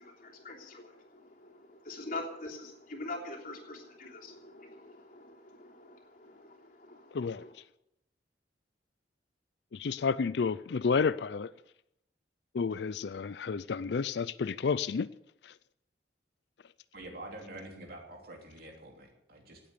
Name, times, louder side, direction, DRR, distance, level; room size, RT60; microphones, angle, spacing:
voice 1, 0.0-7.5, left 2 dB, 50° left, 3.2 m, -44 dB
voice 2, 7.1-7.4 9.7-11.5 12.5-15.1 15.4-15.5, left 5 dB, 65° left, 0.4 m, -31 dB
voice 3, 16.9-19.6, right 1 dB, 55° right, 3.2 m, -46 dB
17.5 x 8.4 x 6.8 m
head